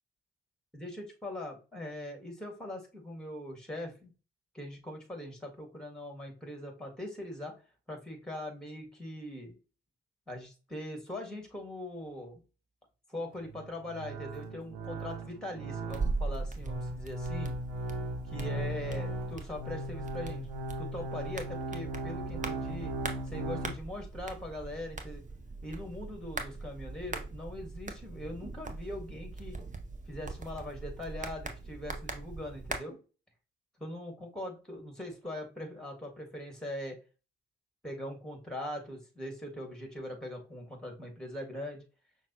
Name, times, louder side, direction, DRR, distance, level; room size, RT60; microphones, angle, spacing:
voice 1, 0.7-4.1 4.5-7.5 7.9-9.6 10.3-12.4 13.1-17.5 18.3-20.5 20.8-22.9 23.3-25.2 25.6-29.6 30.1-33.0 33.8-37.0 37.8-41.8, left 1 dB, ahead, 3 dB, 1.8 m, -41 dB
sound 1, 13.3-23.8, right 1 dB, 75° right, 0.8 m, -38 dB
sound 2, 15.9-32.8, right 3 dB, 25° right, 0.8 m, -40 dB
5.8 x 2.3 x 2.9 m, 0.33 s
hypercardioid pair, 40°, 32 cm